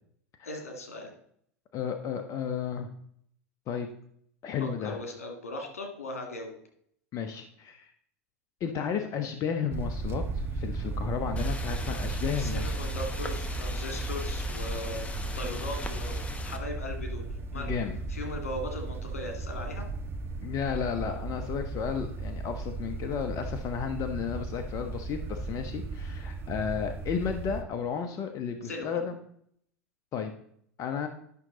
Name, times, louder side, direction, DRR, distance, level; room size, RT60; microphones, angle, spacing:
voice 1, 0.4-1.1 4.6-6.5 11.3-11.4 12.3-17.3 17.5-17.8 18.1-19.8 28.6-29.1, left 1 dB, 85° left, 4 dB, 2.2 m, -38 dB
voice 2, 1.7-2.9 3.7-3.9 4.4-5.0 7.1-7.9 8.6-12.7 17.5-18.0 20.4-29.1 30.1-30.3 30.8-31.1, left 7 dB, 45° left, 6 dB, 1.0 m, -33 dB
sound 1, 9.7-27.6, right 3 dB, 30° right, 1.3 m, -35 dB
sound 2, 11.4-16.6, left 2 dB, 15° left, 1.2 m, -41 dB
11.0 x 6.1 x 3.9 m, 0.66 s
hypercardioid pair, 85°, 8 cm